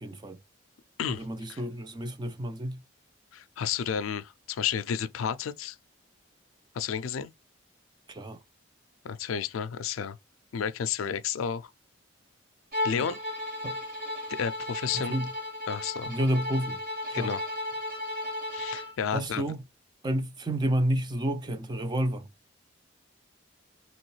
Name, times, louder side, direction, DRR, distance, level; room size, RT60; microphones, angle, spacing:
voice 1, 0.0-0.4 1.1-2.8 8.1-8.4 12.9-13.1 13.6-13.8 14.9-15.3 16.1-16.8 17.1-17.3 19.1-19.6 20.0-22.3, right 1 dB, 20° right, 0.3 m, -30 dB
voice 2, 1.0-1.6 3.3-5.8 6.7-7.3 9.0-10.2 10.5-11.7 12.8-13.2 14.3-15.1 15.7-16.1 17.1-17.4 18.5-19.5, left 7 dB, 85° left, 0.4 m, -32 dB
Bowed string instrument, 12.7-19.0, left 1 dB, 40° right, 1.6 m, -34 dB
3.0 x 2.9 x 3.1 m
head